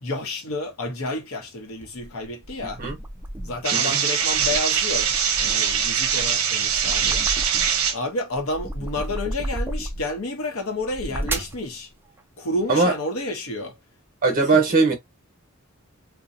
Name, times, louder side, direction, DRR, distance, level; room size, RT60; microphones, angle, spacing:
voice 1, 0.0-2.8 3.4-7.3 7.9-11.9 12.4-13.8 14.4-14.6, left 2 dB, 75° left, 0.8 m, -30 dB
sound 1, 1.8-3.7 4.2-7.9 8.3-10.2 10.8-11.6, right 1 dB, 10° right, 0.4 m, -33 dB
sound 2, 3.6-8.0, right 7 dB, 80° right, 0.7 m, -22 dB
voice 2, 14.2-14.9, right 3 dB, 40° right, 1.1 m, -19 dB
2.6 x 2.1 x 2.5 m
head